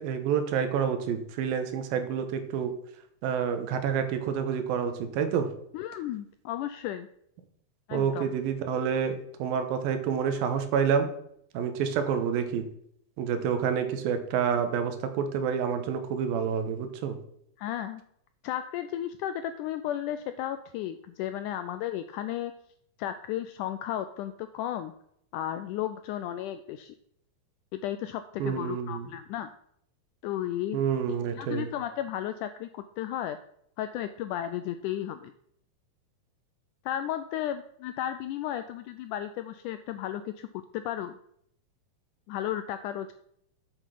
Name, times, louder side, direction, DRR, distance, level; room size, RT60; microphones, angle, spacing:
voice 1, 0.0-2.7 3.2-5.5 7.9-11.1 11.5-12.6 13.2-17.2 28.4-29.1 30.7-31.7, right 7 dB, 85° right, 8 dB, 2.8 m, -28 dB
voice 2, 5.7-7.1 7.9-8.3 17.6-18.0 18.4-22.5 23.0-24.9 25.3-26.9 27.7-29.5 30.2-30.8 31.4-33.4 33.8-35.3 36.9-40.5 40.7-41.2 42.3-43.1, left 11 dB, 85° left, 10 dB, 1.8 m, -34 dB
8.3 x 7.9 x 5.7 m, 0.69 s
omnidirectional pair, 4.1 m